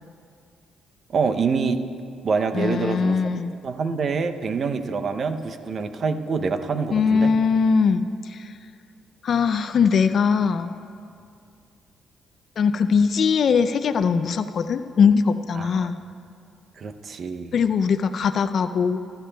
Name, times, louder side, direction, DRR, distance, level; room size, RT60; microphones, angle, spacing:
voice 1, 1.1-1.8 2.2-3.2 3.6-7.3 15.6-15.9 16.8-17.5, right 5 dB, 50° right, 8 dB, 0.6 m, -26 dB
voice 2, 2.5-3.5 6.9-8.6 9.2-10.8 12.6-16.0 17.5-19.0, left 6 dB, 55° left, 9 dB, 0.4 m, -21 dB
15.0 x 12.5 x 2.2 m, 2.4 s
cardioid pair, 90°, 0 cm